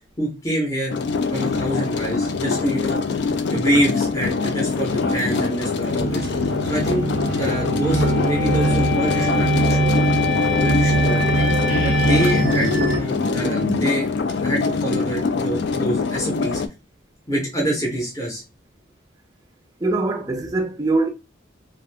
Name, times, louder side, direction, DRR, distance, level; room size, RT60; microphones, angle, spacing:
voice 1, 0.2-0.9 1.3-3.0 3.5-6.3 6.6-7.1 7.4-10.0 10.4-11.5 11.8-14.1 14.4-16.6 17.3-18.4, equal, 15° left, 0.8 m, -25 dB
sound 1, 0.9-16.7, left 4 dB, 60° left, 0.3 m, -24 dB
sound 2, 4.8-14.0, left 6 dB, 85° left, 0.9 m, -28 dB
sound 3, 6.0-13.0, right 3 dB, 85° right, 0.5 m, -22 dB
voice 2, 19.8-21.1, right 2 dB, 20° right, 0.4 m, -22 dB
2.5 x 2.3 x 3.3 m
head